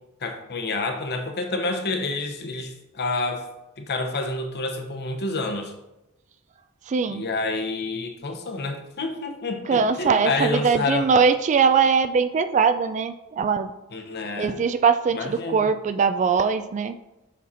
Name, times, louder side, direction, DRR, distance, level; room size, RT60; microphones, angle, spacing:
voice 1, 0.2-3.5 3.8-5.7 7.1-11.1 13.9-14.6 15.1-15.7, left 3 dB, 50° left, 5 dB, 0.9 m, -28 dB
voice 2, 6.9-7.2 9.7-13.7 14.4-17.0, right 5 dB, 35° right, 11 dB, 0.3 m, -21 dB
7.3 x 4.2 x 4.2 m, 0.94 s
head